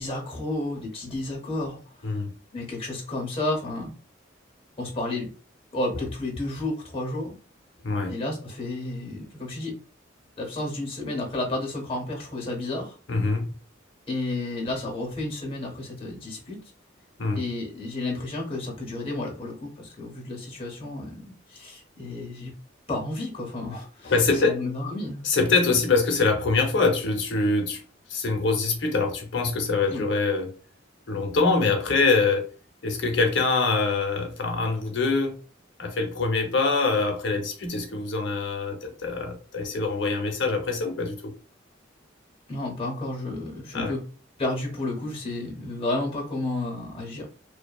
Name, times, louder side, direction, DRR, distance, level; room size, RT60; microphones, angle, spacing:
voice 1, 0.0-2.0 2.5-3.9 4.8-5.3 5.7-7.3 8.1-9.7 10.4-13.0 14.1-16.6 17.3-22.5 22.9-25.3 29.9-30.1 42.5-44.0 44.4-47.3, left 2 dB, 30° left, 0 dB, 0.8 m, -31 dB
voice 2, 13.1-13.5 17.2-17.4 24.0-24.6 25.2-27.8 28.1-30.5 31.1-32.5 32.8-35.4 35.8-41.3 43.7-43.9, left 3 dB, 65° left, 3 dB, 0.6 m, -24 dB
2.6 x 2.2 x 2.2 m, 0.36 s
head